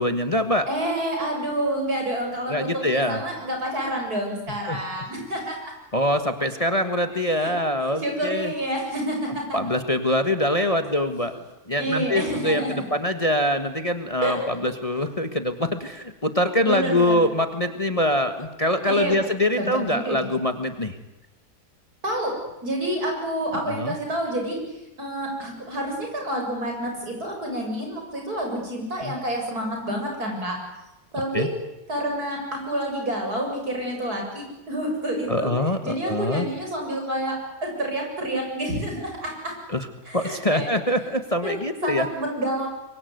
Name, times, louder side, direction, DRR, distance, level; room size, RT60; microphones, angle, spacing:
voice 1, 0.0-0.7 2.5-3.2 4.7-4.8 5.9-8.5 9.5-11.3 11.7-20.9 23.7-23.9 29.0-29.1 31.3-31.5 35.3-36.5 39.7-39.9 40.1-42.1, left 1 dB, 20° left, 8 dB, 1.6 m, -24 dB
voice 2, 0.7-5.7 7.4-7.5 7.8-9.6 11.8-12.8 14.2-14.5 16.7-17.3 18.9-19.2 19.6-20.2 22.0-22.3 22.6-24.6 25.0-30.6 31.1-31.5 31.9-35.5 35.8-39.5 40.1-40.8 41.4-42.7, right 1 dB, 70° right, 1 dB, 7.9 m, -28 dB
24.5 x 23.0 x 9.5 m, 0.97 s
omnidirectional pair, 1.7 m